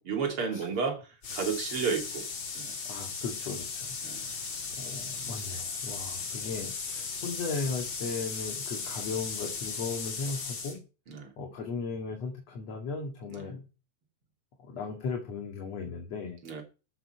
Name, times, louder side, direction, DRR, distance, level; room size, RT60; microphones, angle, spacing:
voice 1, 0.0-2.3 2.6-2.8 4.0-4.3 11.1-11.3 13.3-13.5 16.4-16.6, right 5 dB, 45° right, 3.6 m, -32 dB
sound 1, 1.2-10.8, left 5 dB, 40° left, 2.7 m, -37 dB
voice 2, 2.9-4.0 4.2-4.5 4.8-10.8 11.4-13.6 14.6-16.4, left 4 dB, 55° left, 3.2 m, -37 dB
14.5 x 7.0 x 5.7 m
omnidirectional pair, 3.6 m